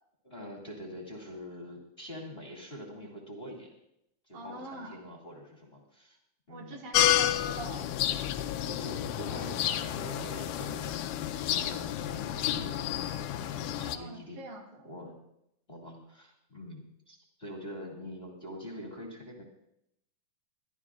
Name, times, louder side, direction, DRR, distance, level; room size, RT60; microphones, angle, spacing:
voice 1, 0.2-3.7 4.2-6.2 6.5-6.8 8.6-11.0 11.3-12.9 13.6-14.4 14.8-15.2 15.7-19.4, equal, 20° left, -1 dB, 2.0 m, -44 dB
voice 2, 4.3-5.1 6.5-7.8 13.8-14.9, right 3 dB, 70° right, -1 dB, 3.6 m, -44 dB
sound 1, 6.9-14.0, left 12 dB, 85° left, 2.3 m, -30 dB
23.0 x 13.0 x 2.4 m, 0.79 s
omnidirectional pair, 3.7 m